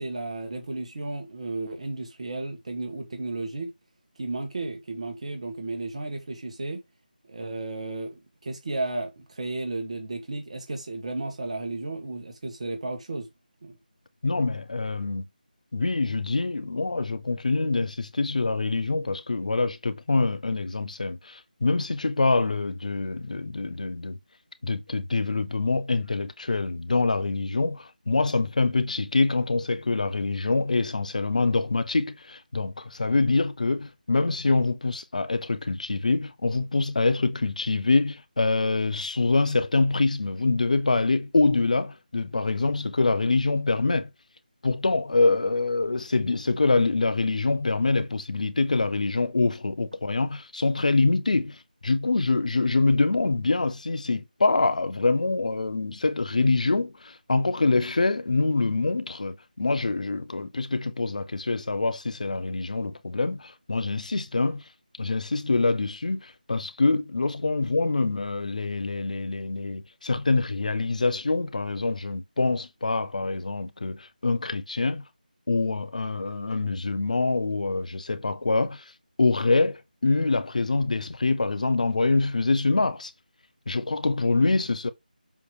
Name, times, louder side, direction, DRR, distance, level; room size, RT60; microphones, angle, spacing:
voice 1, 0.0-3.7 4.2-6.8 7.3-13.3 13.6-13.8, right 2 dB, 45° right, 1.8 m, -33 dB
voice 2, 14.2-15.2 15.7-24.2 24.6-44.1 44.6-64.6 65.0-75.0 75.5-78.9 79.2-83.1 83.7-84.9, left 3 dB, 55° left, 0.9 m, -25 dB
7.4 x 3.3 x 4.7 m
figure-of-eight pair, 165°, 5 cm